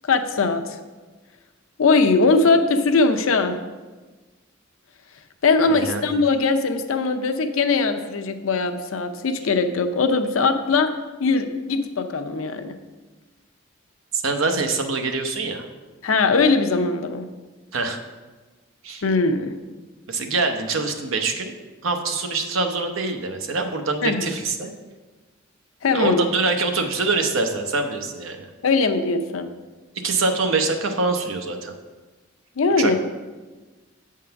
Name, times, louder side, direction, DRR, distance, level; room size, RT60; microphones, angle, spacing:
voice 1, 0.0-0.8 1.8-3.6 5.4-10.9 11.2-12.7 16.0-17.2 19.0-19.5 24.0-24.3 25.8-26.2 28.6-29.5 32.6-33.0, left 3 dB, 85° left, 7 dB, 0.6 m, -20 dB
voice 2, 5.7-6.1 14.1-15.6 17.7-18.0 18.8-19.0 20.1-21.5 21.8-24.7 25.9-28.5 30.0-31.7 32.8-33.0, right 3 dB, 75° right, 5 dB, 0.8 m, -24 dB
7.6 x 3.7 x 5.7 m, 1.3 s
head